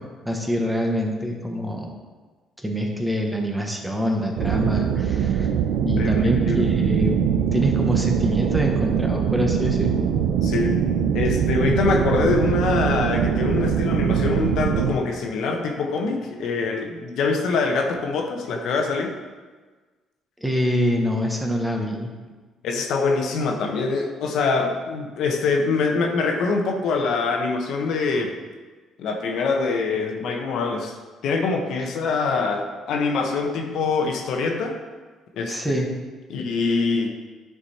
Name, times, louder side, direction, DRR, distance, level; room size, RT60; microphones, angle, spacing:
voice 1, 0.0-1.9 2.6-5.5 5.8-7.1 7.5-10.0 20.4-22.1 35.5-35.9, equal, 5° right, 1 dB, 1.1 m, -25 dB
sound 1, 4.4-14.9, right 8 dB, 85° right, 0.6 m, -22 dB
voice 2, 6.0-6.7 10.4-10.8 11.1-19.1 22.6-28.4 29.0-30.9 31.2-34.8 35.3-35.8 36.3-37.1, left 4 dB, 70° left, 3 dB, 1.0 m, -24 dB
10.5 x 5.0 x 4.3 m, 1.4 s
cardioid pair, 135°, 0 cm